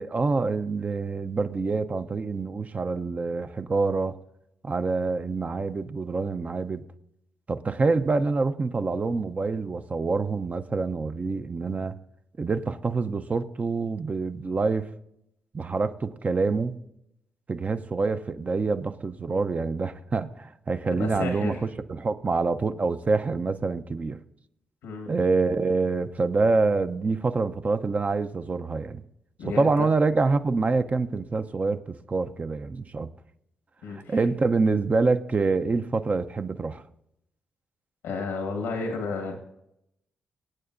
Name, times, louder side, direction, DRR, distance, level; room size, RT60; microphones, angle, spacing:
voice 1, 0.0-4.2 4.6-6.8 7.5-12.0 12.4-14.9 15.5-16.8 17.5-24.2 25.1-29.0 29.4-33.1 33.9-36.8, right 4 dB, 40° right, 0.6 m, -26 dB
voice 2, 21.0-21.6 24.8-25.1 29.4-29.9 33.8-34.2 38.0-39.4, left 3 dB, 85° left, 1.3 m, -32 dB
25.0 x 8.7 x 2.6 m
supercardioid pair, 45°, 4 cm